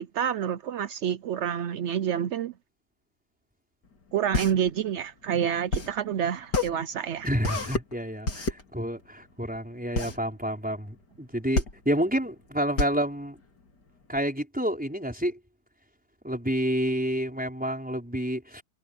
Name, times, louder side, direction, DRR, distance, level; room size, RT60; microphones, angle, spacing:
voice 1, 0.0-2.5 4.1-7.3, right 9 dB, 70° right, 0.7 m, -28 dB
sound 1, 3.9-14.2, left 3 dB, 70° left, 4.1 m, -31 dB
voice 2, 7.2-13.4 14.1-15.4 16.2-18.6, equal, 5° right, 5.1 m, -29 dB
omnidirectional pair, 1.9 m